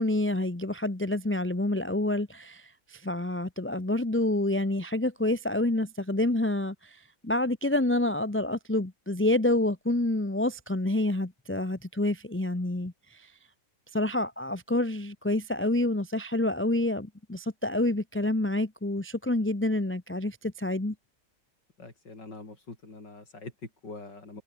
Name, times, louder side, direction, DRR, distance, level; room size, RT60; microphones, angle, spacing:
voice 1, 0.0-13.3 13.9-20.9, left 1 dB, 10° left, 0.9 m, -28 dB
voice 2, 21.8-24.4, left 3 dB, 85° left, 5.8 m, -44 dB
omnidirectional pair, 1.8 m